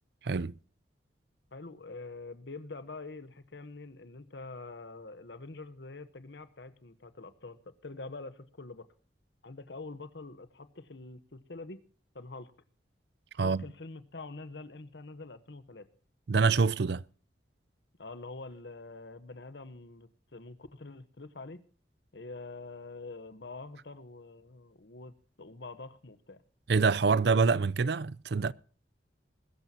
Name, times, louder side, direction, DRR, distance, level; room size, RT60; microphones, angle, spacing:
voice 1, 0.2-0.6 13.4-13.6 16.3-17.0 26.7-28.5, right 5 dB, 65° right, 0.5 m, -26 dB
voice 2, 1.5-8.9 9.4-11.8 12.1-12.5 13.4-15.9 18.0-21.6 22.1-26.4, left 3 dB, 70° left, 1.1 m, -45 dB
21.5 x 12.0 x 2.8 m
head